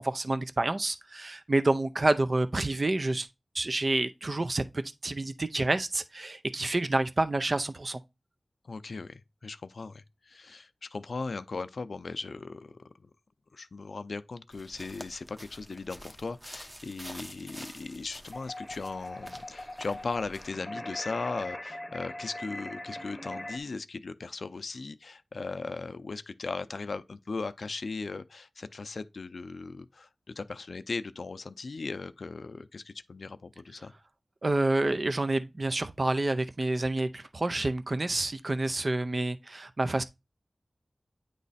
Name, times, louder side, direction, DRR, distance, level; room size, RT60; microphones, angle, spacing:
voice 1, 0.0-3.3 3.5-4.6 5.0-8.0 34.4-40.0, right 2 dB, 45° right, 0.5 m, -28 dB
voice 2, 8.6-13.1 13.5-33.9, left 4 dB, 80° left, 0.4 m, -38 dB
sound 1, 14.5-20.5, equal, 15° right, 0.9 m, -48 dB
sound 2, 18.3-23.6, left 1 dB, 30° left, 0.8 m, -41 dB
9.2 x 3.1 x 4.1 m
wide cardioid pair, 75°, 0 cm